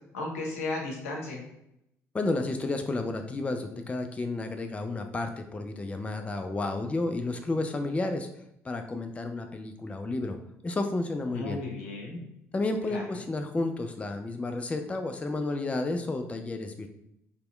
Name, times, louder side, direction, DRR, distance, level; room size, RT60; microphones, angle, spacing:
voice 1, 0.1-1.4 11.3-12.3 12.9-13.0, left 2 dB, 80° left, -1 dB, 0.7 m, -34 dB
voice 2, 2.1-8.3 8.6-10.4 10.6-11.6 12.5-16.9, left 2 dB, 15° left, 6 dB, 0.3 m, -31 dB
2.9 x 2.8 x 2.2 m, 0.80 s
figure-of-eight pair, 50°, 8 cm